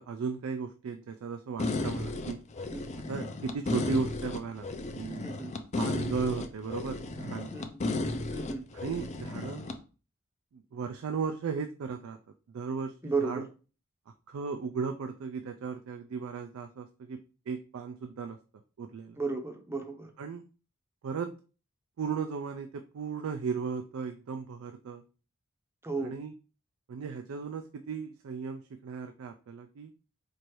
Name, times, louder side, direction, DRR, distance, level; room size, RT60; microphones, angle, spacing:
voice 1, 0.0-2.4 3.1-4.7 4.9-5.2 5.8-7.5 8.7-9.8 10.5-12.2 12.5-13.5 14.1-17.2 17.5-18.4 18.8-19.2 20.2-20.4 21.0-21.3 22.0-25.0 26.0-26.3 26.9-29.9, right 5 dB, 70° right, 7 dB, 0.4 m, -36 dB
sound 1, 1.6-9.8, left 2 dB, 30° left, 0.4 m, -34 dB
voice 2, 5.2-5.5 7.5-7.8 8.3-8.6 13.0-13.4 19.2-20.1 25.8-26.1, right 4 dB, 10° right, 4 dB, 0.6 m, -33 dB
4.5 x 2.6 x 3.0 m, 0.35 s
head